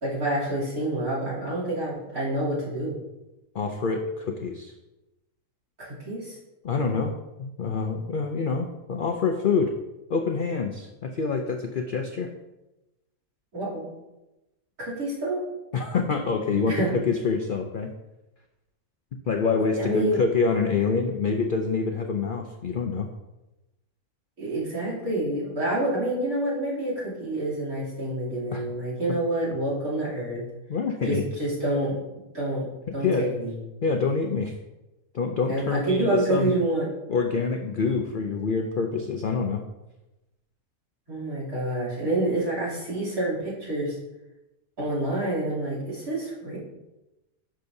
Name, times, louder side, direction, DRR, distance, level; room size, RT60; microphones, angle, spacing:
voice 1, 0.0-3.0 5.8-6.4 13.5-13.9 14.8-15.4 16.7-16.9 19.8-20.2 24.4-30.4 31.1-32.0 32.3-32.7 32.9-33.5 35.5-36.9 41.1-44.0 44.8-46.6, right 1 dB, 70° right, -6 dB, 3.4 m, -28 dB
voice 2, 3.5-4.7 6.6-9.7 10.1-12.3 15.7-17.9 19.3-23.1 28.5-28.6 30.7-31.3 33.0-33.3 33.8-34.6 35.1-36.5 37.1-39.6, left 4 dB, 60° left, 4 dB, 0.5 m, -26 dB
10.0 x 6.4 x 2.7 m, 0.99 s
omnidirectional pair, 1.6 m